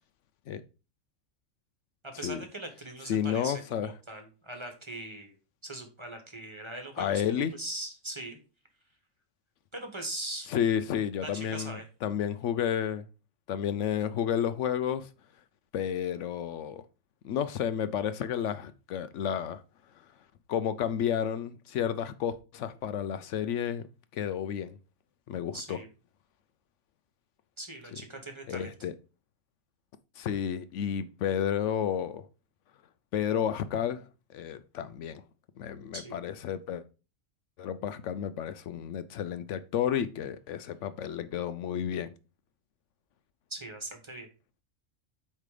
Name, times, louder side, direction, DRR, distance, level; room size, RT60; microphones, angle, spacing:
voice 1, 2.0-5.3 5.6-7.2 7.5-8.4 9.7-10.5 11.2-11.8 25.5-25.9 27.6-28.7 35.9-36.2 43.5-44.3, right 1 dB, 25° right, 1.3 m, -40 dB
voice 2, 3.1-3.9 7.0-7.5 10.5-13.0 13.5-15.1 15.7-16.8 17.2-19.6 20.5-23.9 24.1-24.7 25.3-25.8 28.5-28.9 30.2-32.2 33.1-34.1 34.3-35.2 35.6-36.8 37.6-42.1, left 9 dB, 75° left, 0.9 m, -31 dB
8.6 x 3.3 x 4.9 m
omnidirectional pair, 1.3 m